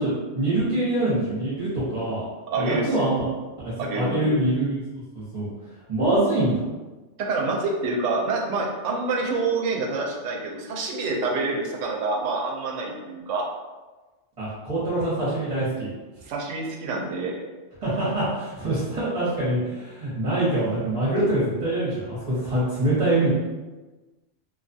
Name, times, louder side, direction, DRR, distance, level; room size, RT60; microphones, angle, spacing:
voice 1, 0.0-2.2 2.6-3.2 3.6-5.5 5.9-6.5 14.4-15.9 17.8-23.3, right 1 dB, 35° right, -11 dB, 0.9 m, -24 dB
voice 2, 2.5-2.9 3.8-4.4 7.2-13.5 16.3-17.4, right 3 dB, 80° right, 0 dB, 0.9 m, -27 dB
2.6 x 2.3 x 2.6 m, 1.2 s
omnidirectional pair, 1.3 m